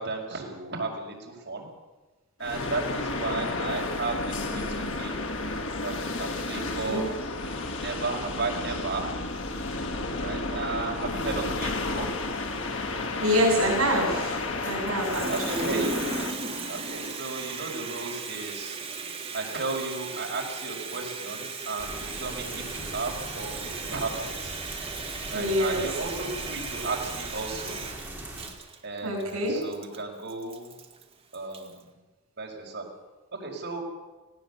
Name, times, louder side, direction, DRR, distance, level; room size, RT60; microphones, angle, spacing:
voice 1, 0.0-1.7 2.4-5.2 5.8-7.1 7.7-9.1 10.2-12.1 15.3-16.0 16.7-18.8 19.3-24.6 25.3-27.8 28.8-30.7 31.3-31.9 32.4-32.9 33.3-33.8, right 3 dB, 55° right, 0 dB, 5.4 m, -34 dB
sound 1, 2.4-17.5, left 3 dB, 65° left, 2.7 m, -32 dB
voice 2, 13.2-14.4 14.6-15.8 25.3-25.8 29.0-29.6, equal, 80° right, -3 dB, 7.1 m, -26 dB
Water tap faucet, 14.9-31.8, right 4 dB, 30° right, 2.0 m, -37 dB
sound 2, 21.8-28.5, right 1 dB, 5° right, 4.1 m, -40 dB
19.0 x 17.5 x 8.4 m, 1.2 s
head